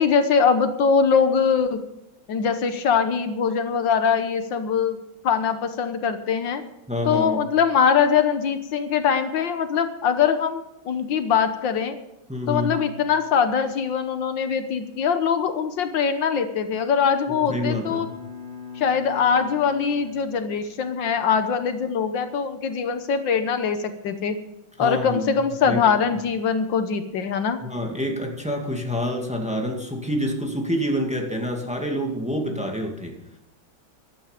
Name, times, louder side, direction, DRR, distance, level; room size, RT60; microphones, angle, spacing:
voice 1, 0.0-1.8 2.3-5.0 5.2-6.6 7.1-12.0 12.5-18.1 18.8-24.4 24.8-27.6, left 6 dB, 75° left, 9 dB, 1.7 m, -22 dB
voice 2, 6.9-7.4 12.3-12.8 17.5-18.1 24.8-25.4 25.7-26.0 27.6-33.2, equal, 5° right, 2 dB, 2.0 m, -27 dB
Bowed string instrument, 17.3-20.9, left 5 dB, 20° right, 5.3 m, -40 dB
15.5 x 11.5 x 5.0 m, 0.94 s
omnidirectional pair, 2.1 m